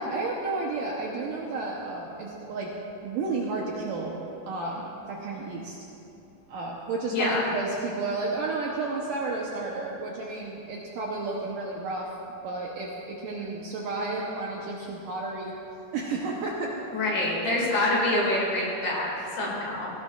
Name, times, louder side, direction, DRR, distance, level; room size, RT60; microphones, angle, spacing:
voice 1, 0.0-2.7 3.0-4.2 4.5-5.8 6.5-12.1 12.4-15.5 15.9-16.7, right 3 dB, 75° right, -2 dB, 2.0 m, -32 dB
voice 2, 16.9-19.9, left 2 dB, 50° left, -4 dB, 3.3 m, -26 dB
16.5 x 16.5 x 2.4 m, 2.9 s
omnidirectional pair, 4.9 m